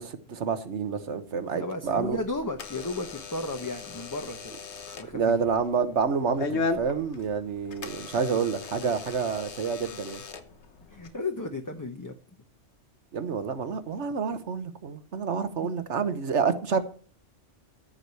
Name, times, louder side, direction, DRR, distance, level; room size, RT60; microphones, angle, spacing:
voice 1, 0.0-2.2 5.1-10.2 13.1-16.8, right 5 dB, 70° right, 1.4 m, -28 dB
voice 2, 1.5-4.5 5.0-5.3 10.9-12.1 15.6-15.7, left 2 dB, 20° left, 0.8 m, -34 dB
Door / Alarm, 1.8-11.1, left 4 dB, 70° left, 1.3 m, -38 dB
14.5 x 4.9 x 6.9 m
omnidirectional pair, 1.2 m